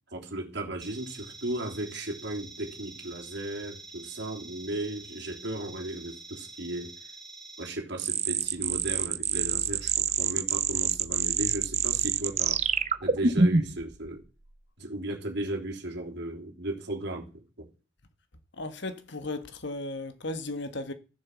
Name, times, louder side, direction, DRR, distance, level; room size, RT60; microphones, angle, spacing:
voice 1, 0.1-7.1 7.6-12.6 13.0-14.2 14.8-17.7, right 1 dB, 55° right, 3.4 m, -36 dB
sound 1, 0.8-7.7, right 3 dB, ahead, 3.2 m, -46 dB
sound 2, 8.0-13.8, right 5 dB, 35° right, 0.8 m, -26 dB
voice 2, 18.5-20.9, left 2 dB, 60° left, 1.5 m, -35 dB
14.5 x 7.3 x 7.3 m
head